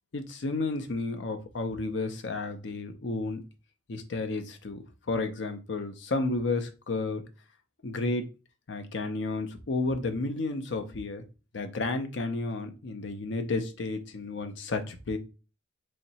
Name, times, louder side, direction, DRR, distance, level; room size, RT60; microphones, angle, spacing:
voice 1, 0.1-3.4 3.9-7.2 7.8-8.3 8.7-11.2 11.5-15.2, left 3 dB, 80° left, 6 dB, 0.6 m, -32 dB
3.2 x 2.8 x 4.1 m, 0.32 s
head